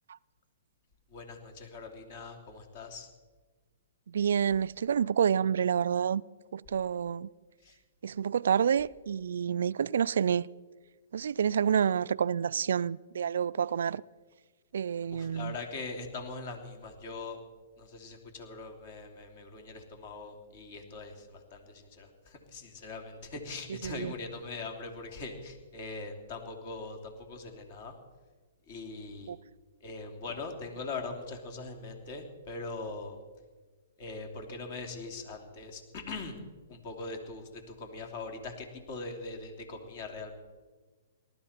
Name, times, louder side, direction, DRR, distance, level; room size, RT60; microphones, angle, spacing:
voice 1, 1.1-3.1 7.6-7.8 15.1-17.4 17.8-27.9 28.7-29.4 29.8-33.2 34.0-36.4 36.7-40.3, left 3 dB, 50° left, 3.0 m, -41 dB
voice 2, 4.1-6.2 6.5-7.3 8.0-10.5 11.1-14.0 14.7-15.6 23.7-24.1 29.3-29.4, right 8 dB, 70° right, 0.3 m, -28 dB
19.0 x 12.5 x 4.4 m
hypercardioid pair, 130°, 0 cm